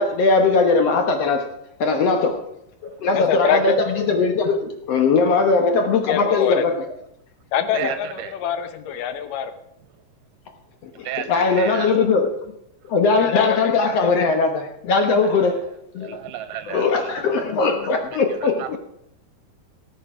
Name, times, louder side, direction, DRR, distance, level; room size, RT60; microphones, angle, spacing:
voice 1, 0.0-1.4 1.8-2.4 2.8-4.6 4.9-6.8 7.8-7.9 11.0-12.3 12.9-15.6 15.9-16.1 16.7-18.8, left 4 dB, 60° left, 4 dB, 1.8 m, -19 dB
voice 2, 3.1-3.8 5.9-6.6 7.5-9.5 13.2-13.8 14.0-14.1, left 8 dB, 80° left, 10 dB, 2.5 m, -24 dB
voice 3, 7.7-8.3 11.0-11.9 15.2-15.3 16.0-17.3 17.8-17.9 18.4-18.8, right 10 dB, 80° right, 10 dB, 2.3 m, -32 dB
18.0 x 8.0 x 5.0 m, 0.78 s
omnidirectional pair, 3.8 m